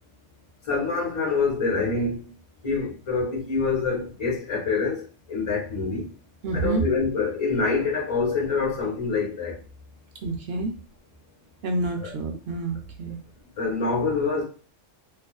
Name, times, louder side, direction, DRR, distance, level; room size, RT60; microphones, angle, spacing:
voice 1, 0.6-2.3 2.6-6.1 6.5-9.6 13.6-14.4, left 4 dB, 30° left, 0.8 m, -26 dB
voice 2, 6.4-6.9 10.2-10.7 11.6-13.2, right 2 dB, 60° right, 0.7 m, -28 dB
2.5 x 2.2 x 2.3 m
omnidirectional pair, 1.3 m